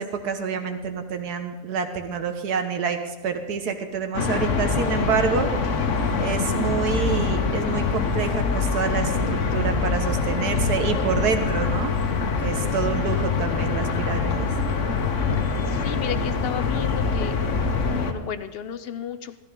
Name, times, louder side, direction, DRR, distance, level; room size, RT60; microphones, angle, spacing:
voice 1, 0.0-5.5 6.2-11.9 12.4-14.5, right 6 dB, 75° right, 6 dB, 1.7 m, -27 dB
sound 1, 4.1-18.1, left 4 dB, 55° left, 1.3 m, -24 dB
voice 2, 15.7-17.4 17.9-19.4, left 9 dB, 70° left, 12 dB, 0.5 m, -33 dB
15.5 x 14.0 x 3.8 m, 1.2 s
omnidirectional pair, 1.7 m